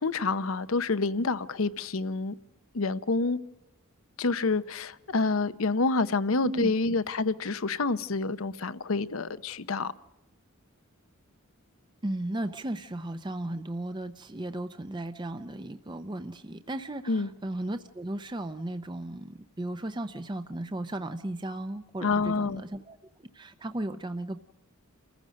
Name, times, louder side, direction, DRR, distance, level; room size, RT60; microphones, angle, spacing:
voice 1, 0.0-2.4 2.7-3.4 4.2-9.9 17.1-17.3 22.0-22.6, left 3 dB, 75° left, 0.8 m, -28 dB
voice 2, 6.4-7.0 12.0-24.4, right 1 dB, 20° right, 0.6 m, -35 dB
28.0 x 15.0 x 6.3 m
head